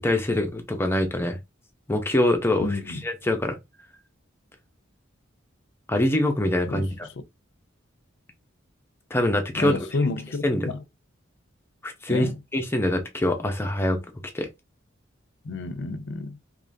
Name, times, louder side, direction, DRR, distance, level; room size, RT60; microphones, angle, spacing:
voice 1, 0.0-1.4 1.9-3.6 5.9-7.1 9.1-9.8 10.4-10.7 11.8-12.3 12.5-14.0 14.3-14.5, left 1 dB, 10° left, 0.7 m, -24 dB
voice 2, 2.6-3.0 6.7-7.1 9.6-10.8 12.1-12.4 15.4-16.4, left 3 dB, 65° left, 0.6 m, -30 dB
3.6 x 3.0 x 2.6 m
head